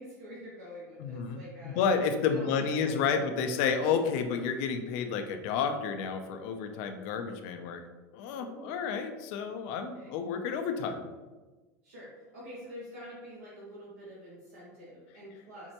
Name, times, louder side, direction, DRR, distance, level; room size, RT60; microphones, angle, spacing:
voice 1, 0.0-1.8 2.3-4.1 8.3-8.7 9.9-10.2 11.8-15.7, equal, 85° right, -6 dB, 0.9 m, -46 dB
voice 2, 1.0-1.4 1.6-7.8 8.1-11.1, left 6 dB, 65° left, 6 dB, 0.4 m, -30 dB
4.3 x 2.1 x 2.9 m, 1.2 s
hypercardioid pair, 95°, 8 cm